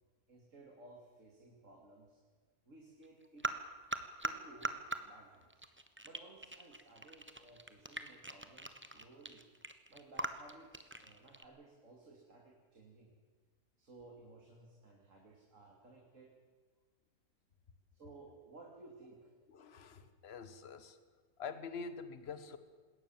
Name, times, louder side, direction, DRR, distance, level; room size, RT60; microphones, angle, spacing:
voice 1, 0.3-2.2 2.6-3.5 4.2-5.6 6.0-9.5 9.9-13.1 13.8-16.3 17.9-19.3, right 2 dB, 55° right, 0 dB, 2.9 m, -58 dB
sound 1, 3.0-4.3 4.6-5.0 5.4-11.4, right 2 dB, 10° right, 1.1 m, -41 dB
voice 2, 19.5-21.0 21.4-22.6, left 5 dB, 45° left, 11 dB, 1.5 m, -46 dB
20.5 x 18.0 x 7.3 m, 1.5 s
omnidirectional pair, 1.6 m